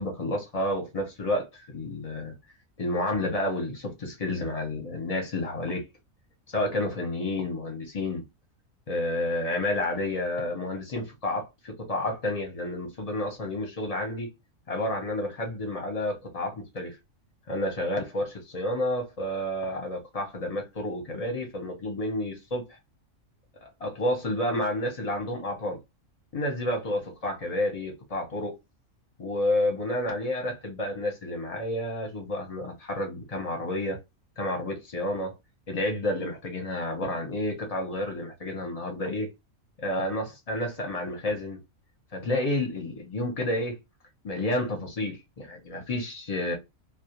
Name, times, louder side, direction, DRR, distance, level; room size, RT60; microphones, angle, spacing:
voice 1, 0.0-2.3 2.8-5.8 6.5-8.2 8.9-14.3 14.7-16.9 17.5-22.7 23.6-25.8 26.3-28.5 29.2-34.0 34.4-35.3 35.7-39.3 39.8-41.6 42.1-43.8 44.2-46.5, left 1 dB, 35° left, 0.7 m, -30 dB
2.3 x 2.1 x 2.9 m
omnidirectional pair, 1.4 m